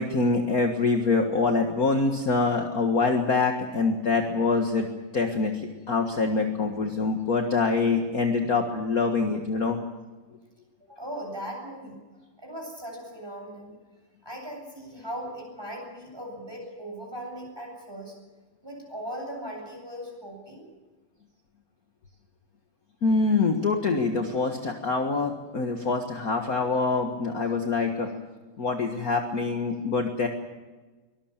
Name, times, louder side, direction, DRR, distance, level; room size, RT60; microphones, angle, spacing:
voice 1, 0.0-4.9 5.1-9.8 23.0-28.1 28.6-30.3, left 4 dB, 45° left, 3 dB, 2.0 m, -25 dB
voice 2, 10.8-12.0 12.4-13.7 14.2-18.1 18.6-20.7, equal, 10° right, 1 dB, 8.0 m, -38 dB
23.5 x 20.5 x 7.4 m, 1.3 s
omnidirectional pair, 2.4 m